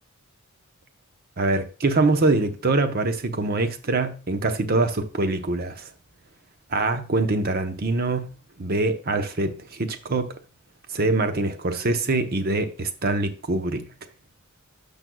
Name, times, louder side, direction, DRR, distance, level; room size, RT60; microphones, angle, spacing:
voice 1, 1.4-5.9 6.7-10.3 10.9-13.9, right 2 dB, 45° right, 0.8 m, -24 dB
12.5 x 5.3 x 2.3 m
head